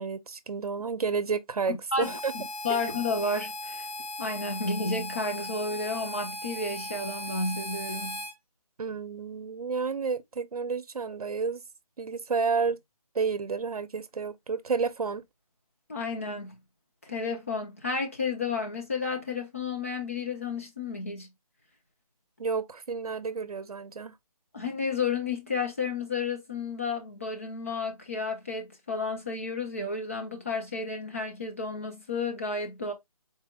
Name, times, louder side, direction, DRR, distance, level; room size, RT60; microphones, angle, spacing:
voice 1, 0.0-2.3 2.7-2.8 8.8-11.6 12.0-12.8 13.1-15.2 22.4-24.1, right 5 dB, 70° right, 0.7 m, -31 dB
voice 2, 1.7-3.9 4.2-8.2 15.9-16.6 17.1-21.3 24.5-32.9, left 3 dB, 20° left, 0.6 m, -32 dB
Harmonica, 2.0-8.3, left 1 dB, 90° left, 1.7 m, -38 dB
4.2 x 2.1 x 3.6 m
figure-of-eight pair, 170°, 19 cm